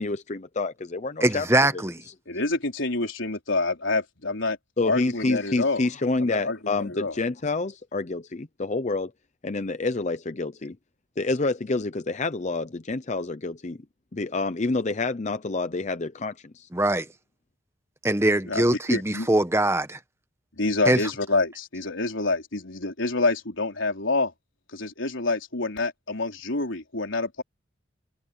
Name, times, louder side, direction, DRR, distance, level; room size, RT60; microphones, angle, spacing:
voice 1, 0.0-1.5 1.7-1.8 4.8-9.1 9.4-10.8 11.2-13.8 14.1-16.7, left 3 dB, 35° left, 0.6 m, -28 dB
voice 2, 1.2-2.0 16.7-17.0 18.0-20.0 20.9-21.0, right 1 dB, 15° right, 1.2 m, -22 dB
voice 3, 2.3-4.6 4.8-5.8 6.2-7.1 18.5-19.3 20.6-24.3 24.7-27.4, left 3 dB, 90° left, 3.9 m, -27 dB
head